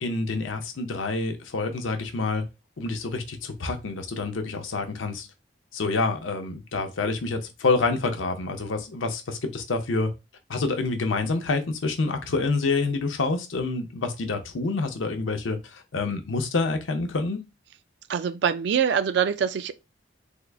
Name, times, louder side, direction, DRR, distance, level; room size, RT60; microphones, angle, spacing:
voice 1, 0.0-2.4 2.8-5.3 5.7-10.1 10.5-17.4, left 3 dB, 90° left, 0.6 m, -27 dB
voice 2, 18.1-19.7, right 7 dB, 60° right, 0.3 m, -24 dB
3.6 x 2.0 x 3.3 m
head